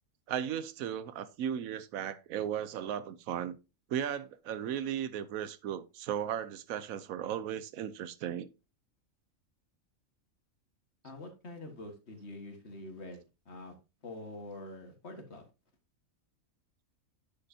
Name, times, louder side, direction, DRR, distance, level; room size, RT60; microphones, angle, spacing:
voice 1, 0.3-3.6 3.9-8.5, right 9 dB, 80° right, 1.1 m, -36 dB
voice 2, 11.0-13.8 14.0-15.5, left 2 dB, 55° left, 1.8 m, -45 dB
9.5 x 6.8 x 2.7 m
omnidirectional pair, 1.4 m